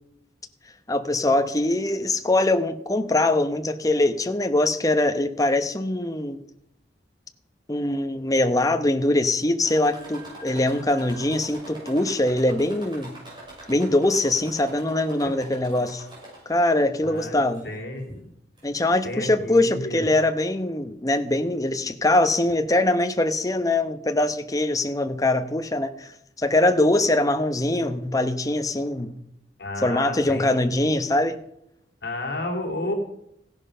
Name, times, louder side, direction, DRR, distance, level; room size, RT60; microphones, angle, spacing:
voice 1, 0.9-6.4 7.7-13.1 13.7-16.0 16.5-17.6 18.6-26.1 26.4-29.2 29.8-31.4, left 2 dB, 20° left, 8 dB, 1.0 m, -22 dB
sound 1, 9.6-16.7 17.2-17.8 18.6-18.7 19.1-19.2, right 1 dB, 25° right, 6.9 m, -44 dB
voice 2, 17.0-18.2 19.0-20.1 29.6-30.9 32.0-32.9, left 1 dB, 65° left, 1 dB, 3.4 m, -32 dB
16.0 x 10.5 x 5.6 m, 0.75 s
head